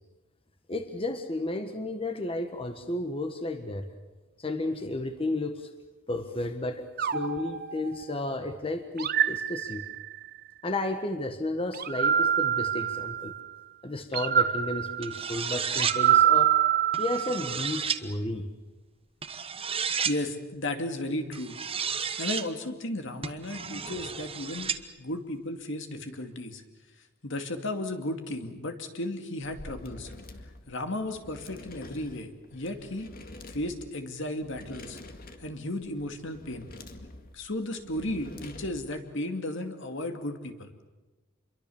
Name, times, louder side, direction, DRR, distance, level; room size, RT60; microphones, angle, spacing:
voice 1, 0.7-3.9 4.4-5.7 6.1-9.8 10.6-13.3 13.8-16.6 17.0-18.4, left 2 dB, 30° left, 7 dB, 1.5 m, -32 dB
sound 1, 7.0-8.3 9.0-10.3 11.7-13.5 14.1-17.6, right 9 dB, 50° right, 1.1 m, -26 dB
sound 2, 15.0-16.0 16.9-18.0 19.2-20.2 21.3-22.5 23.2-24.8, right 6 dB, 30° right, 1.2 m, -32 dB
voice 2, 19.8-21.6 22.2-24.7 25.0-26.6 27.2-30.1 30.7-33.1 33.5-35.0 35.4-36.7 37.3-40.7, left 1 dB, 65° left, 6 dB, 2.5 m, -34 dB
sound 3, 29.4-39.0, left 2 dB, 45° left, 2.0 m, -47 dB
27.5 x 23.0 x 7.2 m, 1.2 s
head